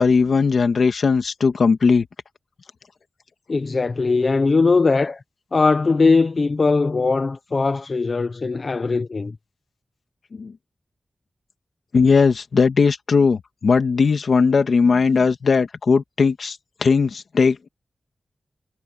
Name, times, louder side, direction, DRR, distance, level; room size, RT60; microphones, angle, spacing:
voice 1, 0.0-2.1 10.3-10.5 11.9-17.7, left 5 dB, 65° left, 2.0 m, -18 dB
voice 2, 3.5-5.2 5.5-9.4, left 4 dB, 45° left, 0.7 m, -20 dB
wide cardioid pair, 120°, 0 cm